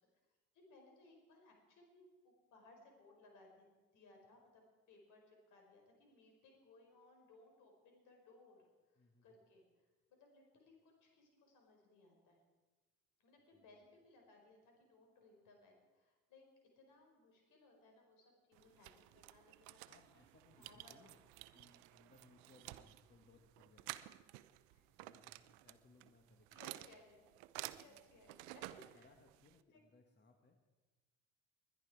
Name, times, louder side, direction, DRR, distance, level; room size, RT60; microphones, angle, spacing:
voice 1, 0.5-3.7 3.9-9.9 10.2-12.4 13.2-16.4 16.8-19.8 20.6-21.0 24.7-24.8 26.5-29.0 29.6-29.8, left 2 dB, 65° left, 2 dB, 4.6 m, -65 dB
voice 2, 9.0-9.3 13.5-13.9 19.8-21.2 21.5-24.0 24.9-26.5 27.7-28.0 28.4-28.5 28.9-30.6, left 3 dB, 30° left, 4 dB, 1.6 m, -68 dB
sound 1, 18.5-29.6, right 18 dB, 80° right, 0.6 m, -53 dB
21.0 x 10.5 x 4.8 m, 1.2 s
hypercardioid pair, 60°, 33 cm